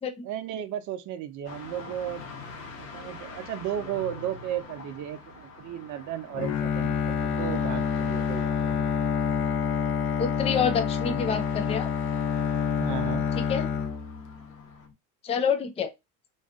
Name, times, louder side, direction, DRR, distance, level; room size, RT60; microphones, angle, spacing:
voice 1, 0.2-8.6 12.8-13.3, right 10 dB, 45° right, 0.6 m, -35 dB
sound 1, 1.4-14.9, left 4 dB, 80° left, 1.1 m, -46 dB
Bowed string instrument, 6.3-14.6, left 6 dB, 65° left, 0.7 m, -27 dB
voice 2, 10.2-11.9 13.4-13.7 15.2-15.9, left 6 dB, 15° left, 0.4 m, -27 dB
2.6 x 2.3 x 2.3 m
hypercardioid pair, 80°, 44 cm